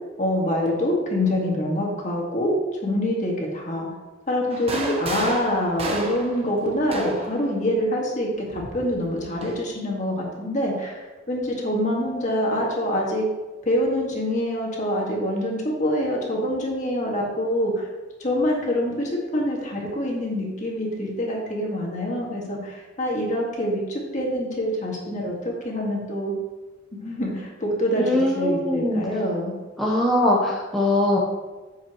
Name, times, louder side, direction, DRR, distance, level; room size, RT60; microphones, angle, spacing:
voice 1, 0.2-3.9 4.3-13.3 13.6-17.9 18.2-26.3 27.0-29.6, equal, 35° left, -2 dB, 1.9 m, -25 dB
sound 1, 4.5-7.4 8.5-9.6, right 2 dB, 30° right, 0.9 m, -32 dB
voice 2, 27.9-29.0 29.8-31.2, left 1 dB, ahead, -5 dB, 0.9 m, -21 dB
9.4 x 7.2 x 3.1 m, 1.2 s
head